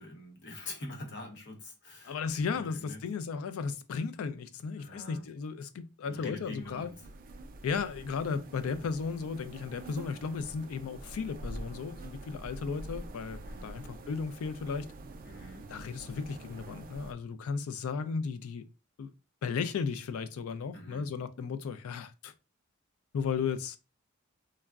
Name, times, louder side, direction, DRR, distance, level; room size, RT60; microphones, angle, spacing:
voice 1, 0.0-2.1 2.5-3.0 4.8-5.3 6.0-7.1 8.5-8.8 13.4-13.8 15.2-15.7 20.7-21.1, left 1 dB, 55° left, 0.8 m, -45 dB
voice 2, 2.0-6.9 7.6-14.9 15.7-18.6 19.0-19.1 19.4-22.3 23.1-23.8, left 5 dB, 75° left, 0.4 m, -35 dB
sound 1, 6.3-17.1, right 2 dB, 40° right, 0.3 m, -46 dB
3.4 x 2.0 x 2.3 m
head